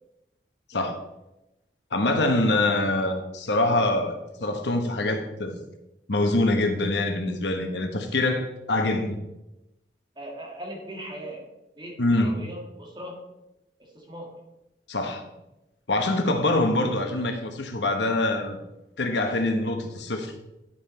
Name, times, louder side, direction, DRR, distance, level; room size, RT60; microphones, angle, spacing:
voice 1, 1.9-5.6 6.1-9.2 12.0-12.3 14.9-15.2 15.9-18.6 19.0-20.3, left 2 dB, 85° left, 5 dB, 1.1 m, -24 dB
voice 2, 10.2-11.5 11.8-13.3 13.8-14.4, right 1 dB, 25° right, -1 dB, 1.8 m, -39 dB
10.0 x 5.6 x 4.3 m, 0.94 s
head